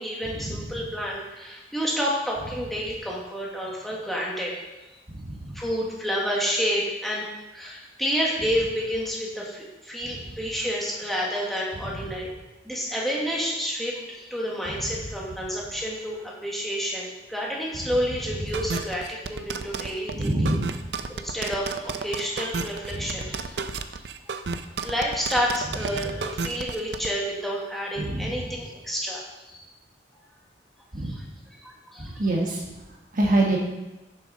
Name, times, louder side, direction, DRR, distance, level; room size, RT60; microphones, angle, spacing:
voice 1, 0.0-4.6 5.5-7.3 7.5-12.3 12.6-20.6 21.1-23.6 24.8-29.6 31.0-31.2 31.5-32.1, equal, ahead, -4 dB, 1.5 m, -29 dB
voice 2, 5.1-5.5 11.9-12.0 20.1-20.8 22.9-23.1 28.0-28.3 30.9-31.2 32.0-32.6 33.1-33.6, right 1 dB, 45° right, -1 dB, 1.5 m, -25 dB
sound 1, 18.5-27.1, right 4 dB, 65° right, 0.5 m, -32 dB
7.0 x 6.8 x 5.4 m, 1.0 s
head